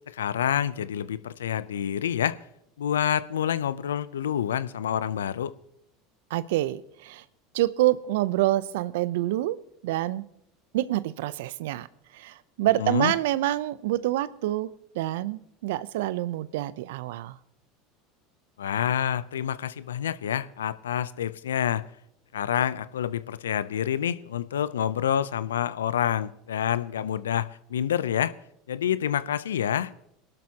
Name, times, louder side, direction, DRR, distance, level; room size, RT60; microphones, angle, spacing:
voice 1, 0.1-2.4 2.8-5.6 12.8-13.1 18.6-21.9 22.3-28.3 28.7-29.9, left 9 dB, 85° left, 0.5 m, -28 dB
voice 2, 6.3-7.2 7.5-10.3 10.7-11.9 12.1-17.4, right 15 dB, 70° right, 0.5 m, -27 dB
23.0 x 12.0 x 2.9 m
hypercardioid pair, 80°, 0 cm